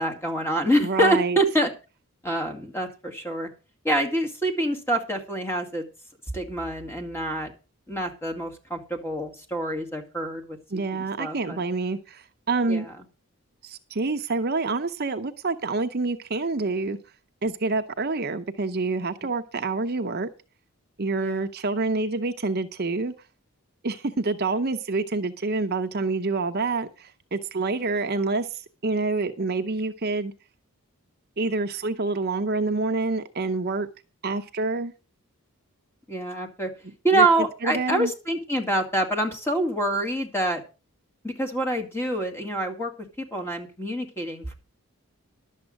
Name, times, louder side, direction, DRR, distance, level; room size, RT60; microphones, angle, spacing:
voice 1, 0.0-1.7 2.2-3.5 3.8-5.8 6.3-7.5 7.9-10.6 10.9-11.6 12.7-12.9 21.2-21.5 36.1-36.7 37.0-40.6 41.2-42.9 43.2-44.5, right 1 dB, 10° left, 4 dB, 2.1 m, -26 dB
voice 2, 0.8-1.4 10.7-12.9 13.6-17.0 17.4-20.3 21.0-23.1 23.8-30.3 31.4-33.9 34.2-34.9 37.1-37.3 37.6-38.1, right 3 dB, 45° right, 7 dB, 0.7 m, -27 dB
11.5 x 7.5 x 6.4 m, 0.32 s
head